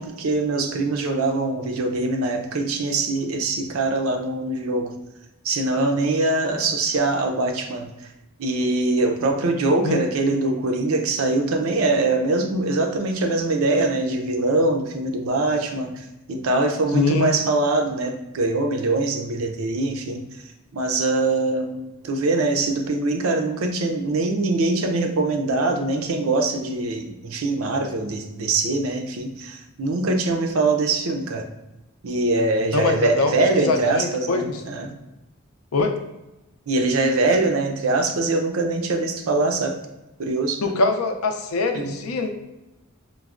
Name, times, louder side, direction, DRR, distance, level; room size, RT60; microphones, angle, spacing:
voice 1, 0.0-4.9 5.4-7.9 8.4-20.2 20.7-31.5 32.0-34.9 36.7-39.8 40.2-40.6 41.7-41.9, right 2 dB, 75° right, 4 dB, 0.5 m, -23 dB
voice 2, 16.9-17.4 32.7-34.6 35.7-35.9 40.6-42.3, left 3 dB, 90° left, 6 dB, 0.5 m, -23 dB
4.5 x 2.1 x 2.4 m, 0.97 s
head